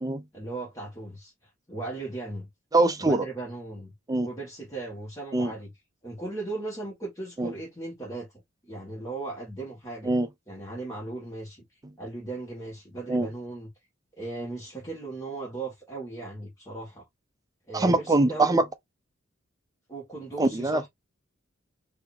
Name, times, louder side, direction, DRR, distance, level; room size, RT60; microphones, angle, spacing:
voice 1, 0.3-2.5 3.0-3.9 4.2-5.7 6.0-8.3 8.7-10.1 10.5-11.6 12.0-13.7 14.2-17.0 17.7-18.6 19.9-20.9, right 2 dB, 15° left, 1.6 m, -37 dB
voice 2, 2.7-3.3 4.1-4.3 5.3-5.5 7.4-7.5 10.0-10.3 13.1-13.3 17.7-18.6 20.4-20.9, right 2 dB, 20° right, 0.5 m, -23 dB
4.8 x 2.8 x 2.6 m
head